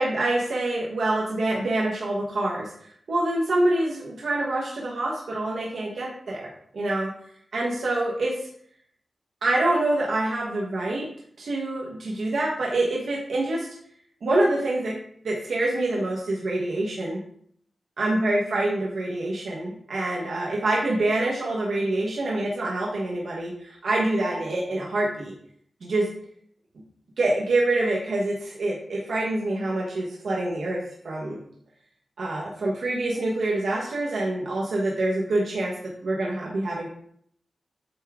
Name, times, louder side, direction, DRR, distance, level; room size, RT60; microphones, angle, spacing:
voice 1, 0.0-2.7 3.1-6.5 6.7-7.1 7.5-8.3 9.4-11.1 11.4-13.7 14.2-14.9 15.2-17.2 18.0-25.3 25.8-26.1 27.2-30.8 31.0-31.4 32.2-35.7 36.0-36.9, right 2 dB, 85° right, -4 dB, 1.1 m, -26 dB
8.2 x 3.5 x 3.6 m, 0.65 s
cardioid pair, 65°, 0 cm